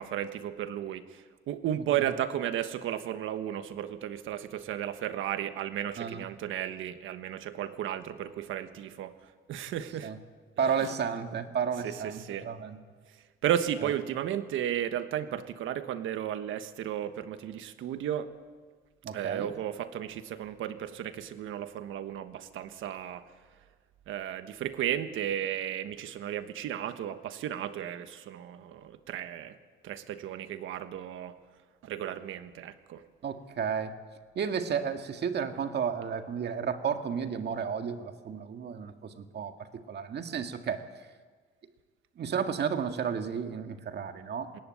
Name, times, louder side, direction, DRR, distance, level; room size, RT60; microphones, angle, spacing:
voice 1, 0.0-9.1 9.5-10.1 10.8-10.9 11.8-12.5 13.4-18.3 19.1-23.2 24.1-29.5 29.8-31.4 31.8-33.0 44.5-44.6, right 10 dB, 85° right, 10 dB, 1.3 m, -34 dB
voice 2, 10.6-12.8 19.0-19.5 33.2-33.9 34.4-40.8 42.2-44.5, right 7 dB, 55° right, 6 dB, 1.9 m, -32 dB
20.5 x 17.5 x 8.9 m, 1.5 s
cardioid pair, 90°, 20 cm